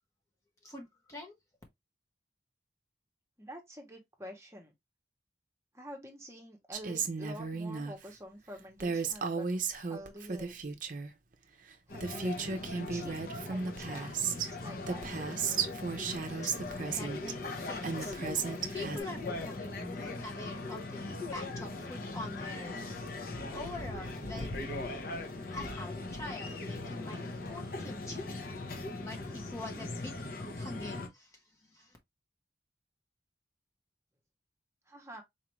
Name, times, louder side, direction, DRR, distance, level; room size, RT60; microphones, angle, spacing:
voice 1, 0.6-1.3 16.3-24.8 25.5-28.4 28.9-30.1 30.5-32.0, left 2 dB, 20° left, 0.7 m, -45 dB
voice 2, 3.4-4.7 5.7-10.7 11.9-15.2 34.9-35.2, equal, 15° right, 0.9 m, -48 dB
Female speech woman speaking, 6.7-7.9 8.8-11.1 11.7-11.8 12.0-14.5 14.9-17.3 17.8-19.0, right 5 dB, 45° right, 0.6 m, -35 dB
sound 1, 11.9-31.1, left 2 dB, 55° left, 0.8 m, -40 dB
4.2 x 2.5 x 3.0 m
head